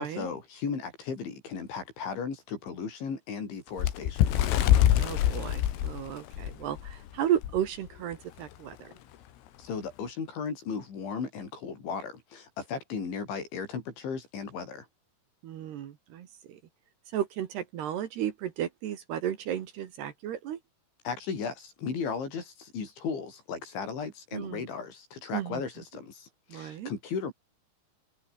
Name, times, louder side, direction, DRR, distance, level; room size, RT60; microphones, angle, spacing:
voice 1, 0.0-4.4 9.6-14.9 21.0-27.3, left 5 dB, 65° left, 8.3 m, -36 dB
Bird, 3.8-7.0 7.4-7.6 7.9-8.1 8.9-9.0, left 12 dB, 90° left, 4.8 m, -24 dB
voice 2, 5.0-8.9 15.4-16.6 17.1-20.6 24.3-24.6 25.3-25.6 26.5-26.9, right 10 dB, 65° right, 3.4 m, -34 dB
omnidirectional pair, 5.7 m